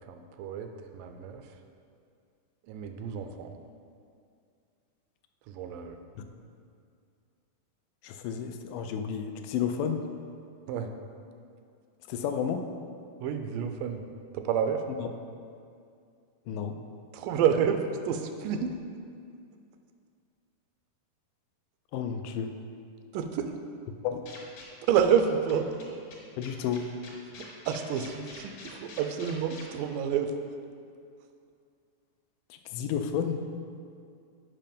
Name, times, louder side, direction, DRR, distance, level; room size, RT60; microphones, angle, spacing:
voice 1, 0.1-0.7 0.9-1.4 2.7-3.6 5.5-6.0 10.7-10.9 13.2-14.0 14.3-14.8 17.1-18.7 23.1-23.5 24.9-25.7 27.7-28.5 28.8-30.3, right 8 dB, 85° right, 6 dB, 2.2 m, -28 dB
voice 2, 8.0-10.0 12.1-12.7 15.0-15.1 16.5-16.8 21.9-22.5 24.0-24.3 26.4-26.9 32.7-33.4, left 7 dB, 85° left, 6 dB, 2.1 m, -31 dB
sound 1, 24.3-24.9 25.2-25.3 25.5-25.6 25.8-25.9 26.1-29.6, left 4 dB, 65° left, 2.7 m, -46 dB
7.6 x 5.5 x 5.2 m, 2.3 s
omnidirectional pair, 3.8 m